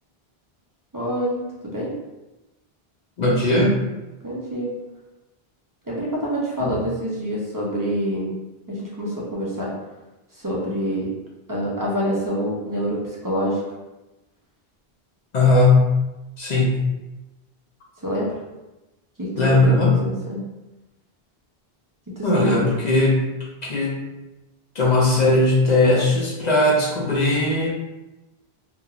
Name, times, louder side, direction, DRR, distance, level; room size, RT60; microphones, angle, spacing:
voice 1, 0.9-1.9 4.2-4.7 5.9-8.3 8.7-9.7 10.3-11.1 11.5-13.6 18.0-18.3 19.2-20.4 22.2-22.7, equal, 30° right, -5 dB, 0.4 m, -26 dB
voice 2, 3.2-3.8 6.6-6.8 15.3-15.9 16.4-16.8 19.4-20.0 22.2-23.3 23.7-24.0 24.8-27.7, left 2 dB, 55° left, -3 dB, 0.5 m, -18 dB
2.9 x 2.2 x 2.3 m, 1.0 s
omnidirectional pair, 1.0 m